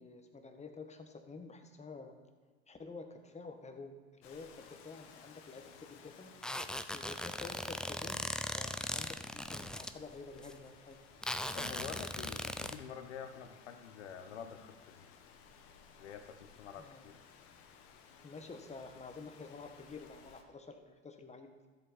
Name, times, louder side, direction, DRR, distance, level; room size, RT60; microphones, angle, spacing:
voice 1, 0.0-2.1 2.7-6.3 6.9-11.0 16.8-17.1 18.2-21.5, left 3 dB, 20° left, 6 dB, 1.4 m, -49 dB
Rain, 4.2-20.4, left 6 dB, 65° left, 1.3 m, -59 dB
sound 1, 6.4-9.9 10.4-10.5 11.2-12.7, left 1 dB, ahead, 0.4 m, -39 dB
voice 2, 11.5-15.1 16.0-17.2, left 7 dB, 85° left, 8 dB, 1.0 m, -47 dB
13.0 x 7.6 x 4.3 m, 1.4 s
hypercardioid pair, 80°, 34 cm